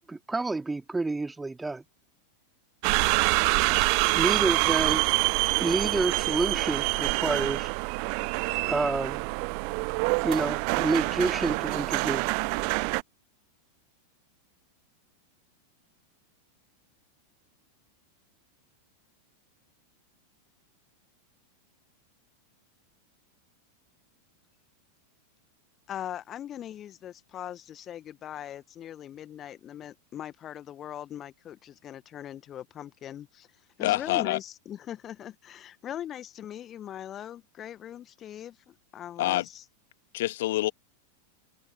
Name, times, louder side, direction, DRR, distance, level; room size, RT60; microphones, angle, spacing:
voice 1, 0.1-1.8 3.8-5.1 5.5-7.7 8.6-9.2 10.2-12.3, right 3 dB, 10° right, 2.9 m, -29 dB
sound 1, 2.8-13.0, right 40 dB or more, 45° right, 1.0 m, -26 dB
voice 2, 25.9-33.5 33.8-39.6, left 11 dB, 30° left, 2.0 m, -40 dB
voice 3, 33.8-34.4 39.2-39.5 40.1-40.7, left 16 dB, 55° left, 2.1 m, -26 dB
figure-of-eight pair, 90°, 0 cm